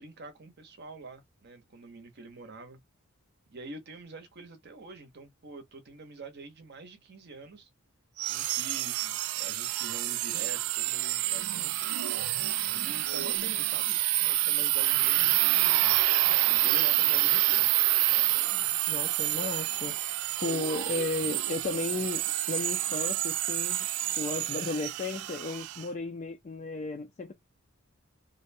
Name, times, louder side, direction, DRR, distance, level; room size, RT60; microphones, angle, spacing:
voice 1, 0.0-2.8 3.5-7.7 8.3-11.9 12.7-15.8 16.5-17.7, right 3 dB, 50° right, 0.8 m, -46 dB
sound 1, 8.2-25.8, right 15 dB, 90° right, 0.3 m, -28 dB
voice 2, 18.9-20.0 20.4-23.9 24.1-27.3, left 3 dB, 35° left, 0.4 m, -34 dB
2.6 x 2.1 x 2.5 m
head